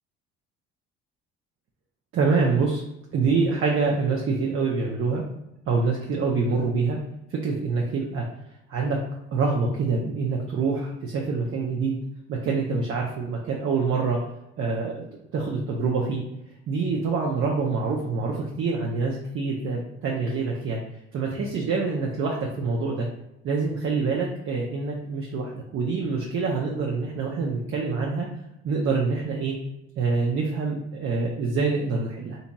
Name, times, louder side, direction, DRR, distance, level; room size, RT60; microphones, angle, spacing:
voice 1, 2.1-2.8 3.1-5.2 5.7-7.0 7.3-8.3 8.7-9.0 9.3-12.0 12.3-14.2 14.6-15.0 15.3-16.2 16.7-20.8 21.1-23.1 23.4-28.3 28.6-29.6 30.0-32.4, right 4 dB, 45° right, -1 dB, 0.5 m, -26 dB
2.8 x 2.6 x 2.2 m, 0.84 s
hypercardioid pair, 70°, 30 cm